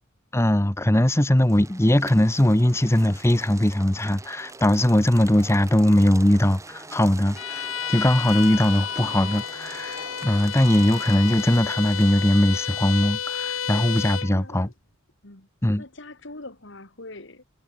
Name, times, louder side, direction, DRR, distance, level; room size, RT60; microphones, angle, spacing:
voice 1, 0.3-10.0 10.2-14.7 15.6-15.8, left 1 dB, 15° left, 0.9 m, -20 dB
sound 1, 1.4-13.0, right 3 dB, 15° right, 1.6 m, -44 dB
Bowed string instrument, 7.3-14.4, left 8 dB, 80° left, 3.5 m, -31 dB
voice 2, 14.3-14.7 15.2-15.5 15.8-17.4, left 2 dB, 60° left, 2.8 m, -42 dB
head